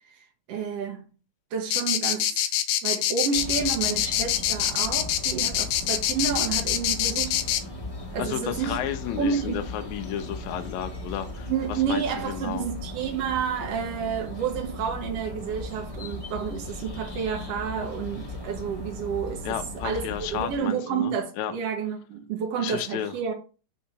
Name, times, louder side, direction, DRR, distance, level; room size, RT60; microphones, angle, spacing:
voice 1, 0.1-1.1 1.5-2.5 2.8-7.4 8.1-8.8 9.2-9.6 11.5-20.0 20.3-23.3, right 7 dB, 75° right, 1.4 m, -30 dB
sound 1, 1.7-7.6, left 11 dB, 90° left, 2.4 m, -25 dB
sound 2, 3.3-20.6, left 1 dB, 35° left, 0.5 m, -37 dB
voice 2, 8.2-11.5 11.9-12.7 19.4-21.5 22.6-23.1, left 10 dB, 75° left, 1.8 m, -32 dB
5.6 x 3.7 x 5.6 m
omnidirectional pair, 4.0 m